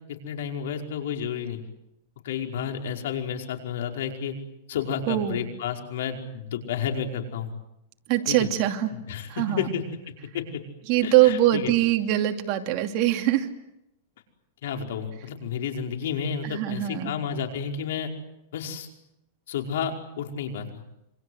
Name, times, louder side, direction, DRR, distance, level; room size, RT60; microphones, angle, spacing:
voice 1, 0.1-1.6 2.2-4.3 4.7-7.5 8.3-8.5 8.9-9.8 10.3-10.4 11.0-11.7 14.6-18.1 18.5-18.9 19.5-20.7, left 7 dB, 75° left, 3 dB, 5.2 m, -31 dB
voice 2, 5.1-5.4 8.1-8.9 9.3-9.7 10.9-13.5 16.4-17.1, right 13 dB, 45° right, 5 dB, 2.7 m, -23 dB
27.5 x 25.0 x 8.1 m, 0.85 s
supercardioid pair, 150°, 0 cm